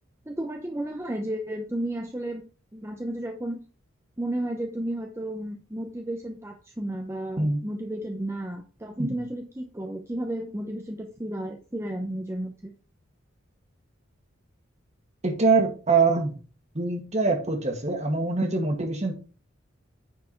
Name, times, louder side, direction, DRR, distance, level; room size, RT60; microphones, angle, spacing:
voice 1, 0.3-2.4 2.7-3.6 4.2-12.7, right 1 dB, 15° right, 3 dB, 0.7 m, -33 dB
voice 2, 15.2-16.3 16.8-19.1, right 4 dB, 35° right, 4 dB, 1.8 m, -24 dB
9.4 x 4.7 x 4.5 m, 0.36 s
head